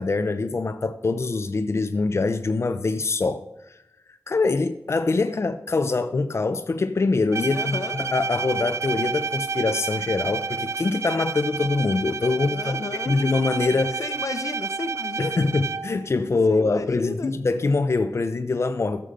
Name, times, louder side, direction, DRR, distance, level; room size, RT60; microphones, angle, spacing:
voice 1, 0.0-3.8 4.3-12.8 13.1-14.0 15.2-19.0, left 3 dB, 60° left, 0.6 m, -24 dB
Bowed string instrument, 7.3-16.1, right 5 dB, 65° right, 0.4 m, -30 dB
voice 2, 7.5-8.0 12.5-13.3 14.0-15.5 16.5-17.3, left 3 dB, 90° left, 0.9 m, -33 dB
15.5 x 6.7 x 5.1 m
wide cardioid pair, 80°, 5 cm